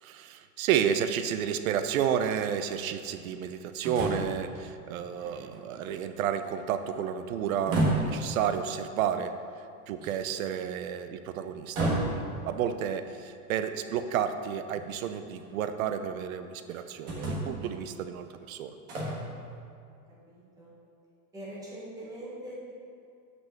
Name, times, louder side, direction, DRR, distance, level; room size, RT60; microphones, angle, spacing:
voice 1, 0.0-9.4 9.9-18.7, right 8 dB, 70° right, 9 dB, 0.6 m, -31 dB
sound 1, 3.8-4.4 5.0-5.1 5.5-6.5 7.5-8.2 10.0-10.4 11.7-12.4 14.0-14.1 14.7-15.4 16.7-16.8 17.1-17.7 18.9-19.3, right 1 dB, 40° right, 1.5 m, -30 dB
voice 2, 5.2-5.7 19.9-20.7 21.3-22.7, right 1 dB, 10° right, -6 dB, 1.2 m, -44 dB
6.3 x 5.4 x 6.8 m, 2.4 s
supercardioid pair, 180°, 44 cm